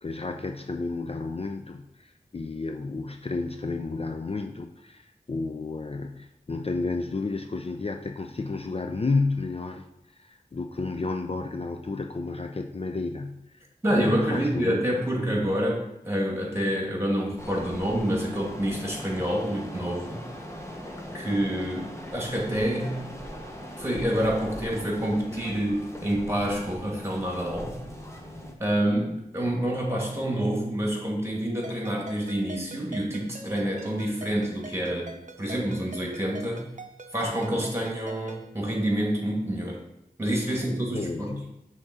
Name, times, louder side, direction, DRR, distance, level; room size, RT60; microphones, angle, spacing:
voice 1, 0.0-14.9 40.9-41.6, left 3 dB, 40° left, 5 dB, 0.4 m, -32 dB
voice 2, 13.8-20.2 21.1-23.0 23.8-27.8 28.6-35.1 35.4-36.7 37.1-39.8 40.2-41.4, equal, 15° right, -1 dB, 2.3 m, -27 dB
sound 1, 17.4-28.5, equal, 20° left, 1.1 m, -40 dB
Ringtone, 31.6-38.5, right 2 dB, 55° right, 0.7 m, -45 dB
6.5 x 3.7 x 6.1 m, 0.84 s
wide cardioid pair, 50°, 15 cm